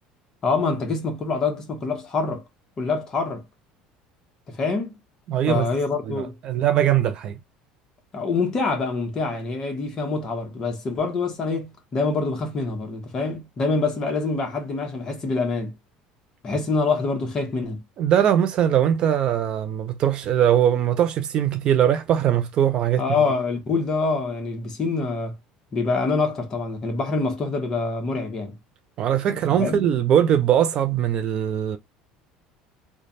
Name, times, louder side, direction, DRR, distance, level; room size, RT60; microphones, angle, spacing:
voice 1, 0.4-2.4 2.8-3.4 4.5-4.9 5.5-6.4 8.1-15.7 16.4-17.8 23.0-25.3 25.7-28.5 29.3-29.9, left 4 dB, 30° left, 1.1 m, -25 dB
voice 2, 5.3-5.7 6.1-7.4 18.0-23.0 29.0-31.8, right 10 dB, 40° right, 0.5 m, -21 dB
3.2 x 2.2 x 4.1 m
cardioid pair, 150°, 2 cm